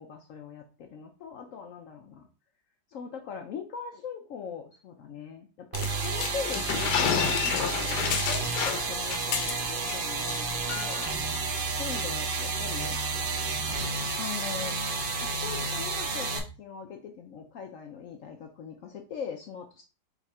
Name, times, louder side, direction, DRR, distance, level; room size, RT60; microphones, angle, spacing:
voice 1, 0.0-2.3 2.9-6.6 6.9-11.1 11.8-13.0 14.2-14.8 15.2-19.8, left 6 dB, 85° left, 3 dB, 0.7 m, -41 dB
sound 1, 5.7-10.0 10.2-10.4 10.7-11.1, left 8 dB, 70° left, 1.1 m, -30 dB
sound 2, 5.7-16.4, right 4 dB, 85° right, 0.4 m, -31 dB
3.7 x 3.4 x 4.2 m, 0.34 s
omnidirectional pair, 2.0 m